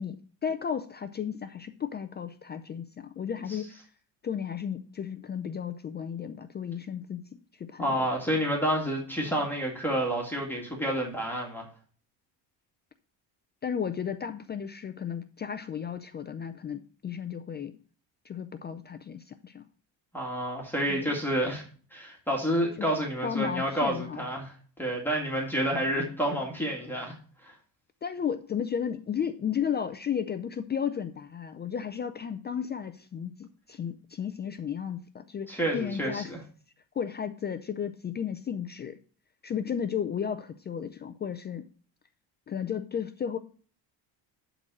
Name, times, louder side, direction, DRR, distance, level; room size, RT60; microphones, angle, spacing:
voice 1, 0.0-3.7 4.2-7.2 7.5-8.1 13.6-17.8 18.2-19.6 20.9-21.1 22.8-22.9 23.2-24.2 28.0-36.3 37.0-39.0 39.4-41.6 42.5-43.4, left 8 dB, 25° left, 9 dB, 0.4 m, -34 dB
voice 2, 7.8-11.7 20.1-21.6 21.9-24.5 24.8-27.1 27.4-27.6 35.5-36.4, right 1 dB, 5° left, -1 dB, 2.0 m, -29 dB
11.5 x 4.0 x 6.1 m, 0.42 s
cardioid pair, 140°, 43 cm